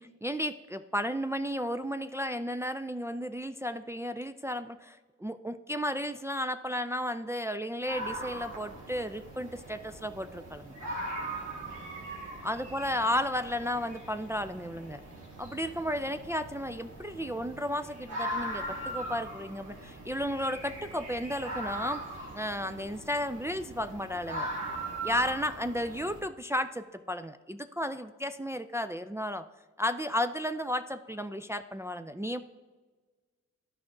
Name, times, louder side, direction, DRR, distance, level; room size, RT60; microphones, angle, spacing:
voice 1, 0.0-10.8 12.4-15.0 15.4-22.0 22.3-24.5 25.0-29.4 29.8-32.4, equal, 10° right, 9 dB, 0.3 m, -33 dB
sound 1, 7.8-26.2, right 1 dB, 85° right, 2.0 m, -40 dB
12.0 x 4.7 x 3.7 m, 1.3 s
cardioid pair, 55°, 30 cm